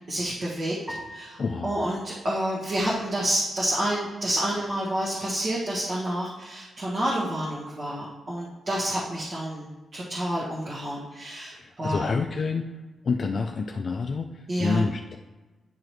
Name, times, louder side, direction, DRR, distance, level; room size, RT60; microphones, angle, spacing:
voice 1, 0.1-0.8 1.1-1.4 1.6-12.1 14.5-14.8, right 1 dB, 45° right, -6 dB, 1.4 m, -29 dB
sound 1, 0.9-3.3, equal, 10° right, 1.4 m, -44 dB
voice 2, 1.4-1.8 11.5-12.8 13.0-15.2, left 4 dB, 40° left, 4 dB, 0.3 m, -28 dB
9.5 x 4.9 x 3.1 m, 1.2 s
wide cardioid pair, 145°, 0 cm